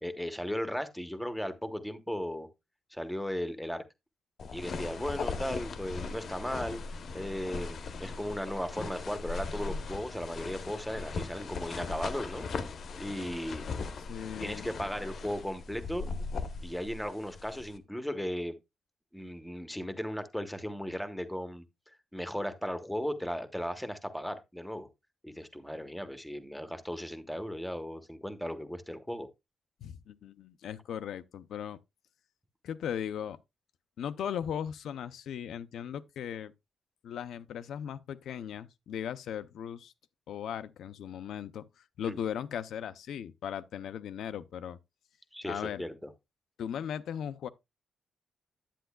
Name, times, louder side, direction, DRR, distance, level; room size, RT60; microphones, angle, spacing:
voice 1, 0.0-2.5 2.9-3.8 4.5-6.8 7.1-12.5 13.0-13.6 14.2-16.1 16.6-18.5 19.1-21.6 22.1-24.9 25.2-29.3 42.0-42.2 45.3-46.1, equal, ahead, 0.9 m, -36 dB
sound 1, 4.4-17.8, left 4 dB, 45° left, 0.8 m, -39 dB
voice 2, 14.1-14.7 29.8-31.8 32.6-33.4 34.0-36.5 37.0-39.9 40.3-44.8 45.4-45.8 46.6-47.5, left 9 dB, 90° left, 0.6 m, -38 dB
10.0 x 9.0 x 2.3 m
wide cardioid pair, 175°, 0 cm